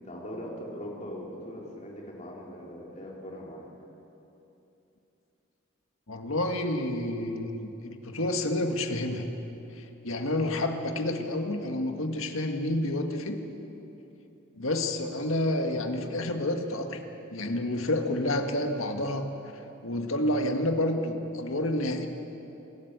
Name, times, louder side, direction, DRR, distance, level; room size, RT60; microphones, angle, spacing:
voice 1, 0.0-3.7, equal, 35° left, -3 dB, 3.7 m, -40 dB
voice 2, 6.1-9.3 9.8-13.4 14.6-17.0 17.3-19.3 19.8-22.1, left 1 dB, 85° left, 4 dB, 1.8 m, -29 dB
27.0 x 13.0 x 8.1 m, 3.0 s
head